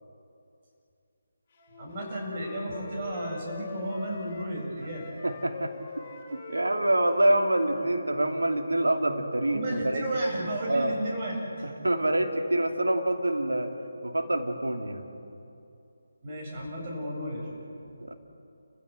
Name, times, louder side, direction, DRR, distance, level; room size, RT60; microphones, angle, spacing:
Wind instrument woodwind instrument, 1.6-7.9, left 2 dB, 30° left, 5.6 m, -42 dB
voice 1, 1.8-5.1 9.5-11.4 16.2-17.5, right 1 dB, 30° right, -2 dB, 7.6 m, -33 dB
voice 2, 5.2-5.7 6.3-10.1 10.4-10.9 11.6-13.7 14.0-15.1 18.0-18.1, right 1 dB, 80° right, 4 dB, 2.7 m, -26 dB
30.0 x 16.0 x 7.8 m, 2.7 s
figure-of-eight pair, 155°, 0 cm